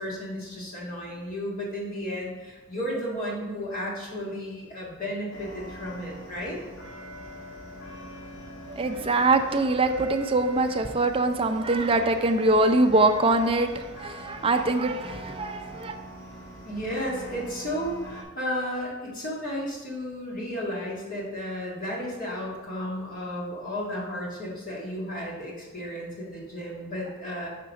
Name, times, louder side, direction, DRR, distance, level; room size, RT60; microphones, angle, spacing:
voice 1, 0.0-6.6 16.6-27.5, equal, 45° left, -5 dB, 2.0 m, -33 dB
sound 1, 5.3-18.2, right 1 dB, 90° left, 1.7 m, -43 dB
voice 2, 8.7-16.0, right 2 dB, 30° right, 7 dB, 0.4 m, -23 dB
5.9 x 3.7 x 5.9 m, 1.2 s
head